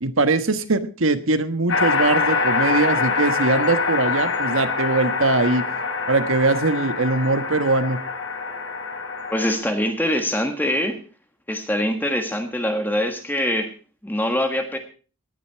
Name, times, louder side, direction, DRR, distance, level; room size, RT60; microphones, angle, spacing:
voice 1, 0.0-5.6 6.1-8.0, right 3 dB, 75° right, 11 dB, 1.4 m, -21 dB
sound 1, 1.7-9.5, left 4 dB, 60° left, 3.9 m, -24 dB
voice 2, 9.3-11.0 11.5-13.7 14.0-14.8, left 1 dB, 10° left, 5 dB, 1.5 m, -23 dB
18.0 x 11.0 x 4.6 m, 0.37 s
head